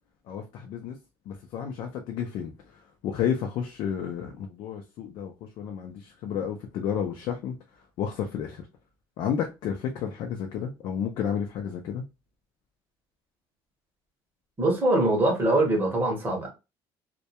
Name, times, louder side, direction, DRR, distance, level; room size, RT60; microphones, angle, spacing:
voice 1, 0.3-1.0 1.3-2.5 3.0-7.6 8.0-8.6 9.2-12.0, left 8 dB, 50° left, 0.4 m, -31 dB
voice 2, 14.6-16.5, right 1 dB, 20° right, 0.8 m, -23 dB
2.2 x 2.1 x 2.7 m
cardioid pair, 175°, 10 cm